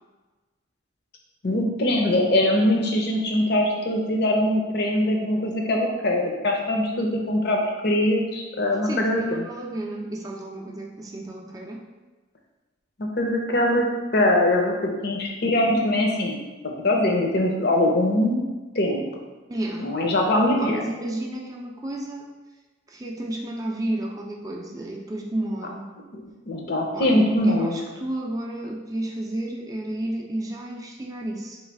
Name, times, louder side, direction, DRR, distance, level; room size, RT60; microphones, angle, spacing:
voice 1, 1.4-7.6 7.8-9.5 13.0-13.9 14.1-16.4 16.8-18.4 18.7-19.0 19.8-20.9 26.1-27.8, left 1 dB, 55° left, 1 dB, 0.7 m, -22 dB
voice 2, 8.8-11.8 19.5-19.9 20.5-22.3 22.9-25.9 26.9-31.6, right 1 dB, 20° right, -1 dB, 0.4 m, -32 dB
3.2 x 3.1 x 4.6 m, 1.2 s
head